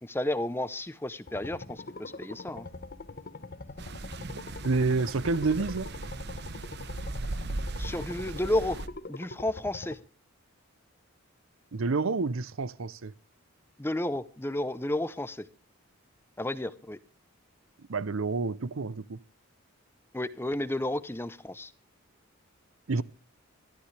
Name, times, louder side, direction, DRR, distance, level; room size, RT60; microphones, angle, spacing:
voice 1, 0.0-2.7 7.7-8.8 9.1-10.0 13.8-15.5 16.4-17.0 20.1-21.7, left 1 dB, 10° left, 0.7 m, -32 dB
sound 1, 1.3-10.0, left 3 dB, 45° left, 1.0 m, -43 dB
sound 2, 3.8-8.9, right 2 dB, 50° right, 1.0 m, -38 dB
voice 2, 4.6-5.9 11.7-13.1 17.9-19.2 22.9-23.0, right 3 dB, 65° right, 0.6 m, -28 dB
22.5 x 13.5 x 3.3 m
head